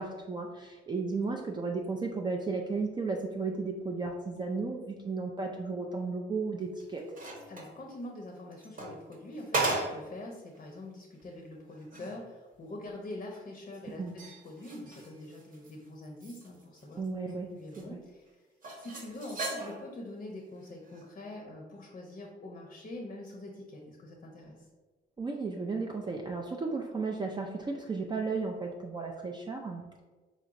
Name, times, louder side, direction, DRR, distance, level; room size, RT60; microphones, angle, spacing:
voice 1, 0.0-7.0 14.0-14.1 17.0-18.0 25.2-30.0, right 4 dB, 20° right, 1 dB, 0.4 m, -34 dB
sound 1, 6.6-7.8 8.5-10.1 10.5-10.6 11.2-11.3 11.7-12.2 13.7-15.7 16.0-17.3 17.7-17.8 18.6-20.0 20.8-21.1, right 2 dB, 45° right, 0.9 m, -37 dB
voice 2, 7.5-17.0 17.5-18.4 18.8-24.6, left 1 dB, 40° left, 0 dB, 0.6 m, -44 dB
4.2 x 2.9 x 2.5 m, 1.3 s
cardioid pair, 90°, 20 cm